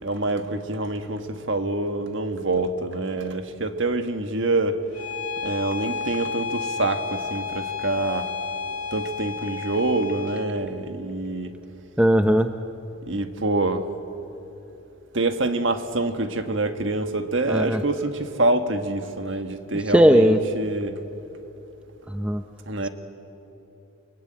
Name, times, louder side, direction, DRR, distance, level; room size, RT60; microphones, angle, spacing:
voice 1, 0.0-4.8 5.4-8.3 8.9-11.5 13.0-13.9 15.1-21.0 22.6-22.9, right 2 dB, 60° right, 7 dB, 1.6 m, -26 dB
Bowed string instrument, 4.9-10.5, left 5 dB, 90° left, 2.8 m, -31 dB
voice 2, 12.0-12.5 17.5-17.8 19.9-20.4 22.1-22.4, equal, 5° right, 7 dB, 0.6 m, -18 dB
29.5 x 22.5 x 8.8 m, 2.9 s
head